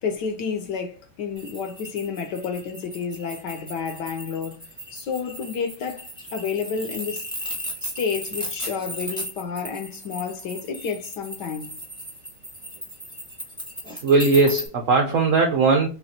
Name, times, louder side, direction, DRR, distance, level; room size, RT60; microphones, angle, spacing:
voice 1, 0.0-4.6 4.9-7.3 7.8-11.8, left 6 dB, 65° left, 1.1 m, -30 dB
sound 1, 1.4-14.7, equal, 5° left, 0.6 m, -36 dB
voice 2, 14.0-15.9, right 3 dB, 85° right, 0.7 m, -18 dB
4.2 x 3.0 x 2.7 m
omnidirectional pair, 2.2 m